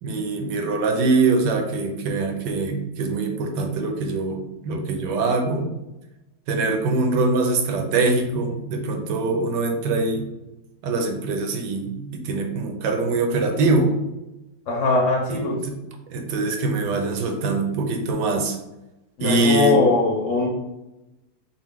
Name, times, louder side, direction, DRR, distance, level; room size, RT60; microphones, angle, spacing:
voice 1, 0.0-5.7 6.5-10.3 10.8-13.9 15.3-15.8 16.1-18.6 19.2-19.8, right 3 dB, 80° right, 4 dB, 1.3 m, -23 dB
voice 2, 14.7-15.6 19.2-20.5, left 3 dB, 60° left, -2 dB, 0.8 m, -20 dB
4.1 x 2.4 x 3.6 m, 0.97 s
omnidirectional pair, 1.9 m